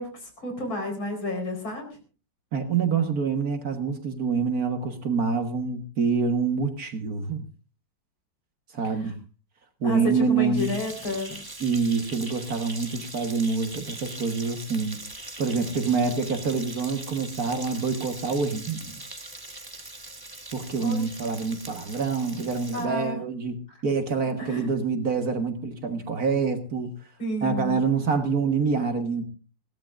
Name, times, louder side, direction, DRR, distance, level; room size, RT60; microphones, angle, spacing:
voice 1, 0.0-1.9 9.0-9.1 9.8-11.4 20.8-21.0 22.7-23.2 24.4-24.7 27.2-27.8, left 1 dB, 75° left, 4 dB, 5.2 m, -31 dB
voice 2, 2.5-7.4 8.7-9.2 9.8-10.7 11.6-15.0 15.4-19.0 20.5-23.6 23.8-26.9 27.4-29.2, right 5 dB, 50° right, 6 dB, 1.7 m, -26 dB
sound 1, 10.6-22.9, right 2 dB, 15° right, 1.1 m, -41 dB
21.0 x 17.0 x 2.5 m, 0.36 s
omnidirectional pair, 2.2 m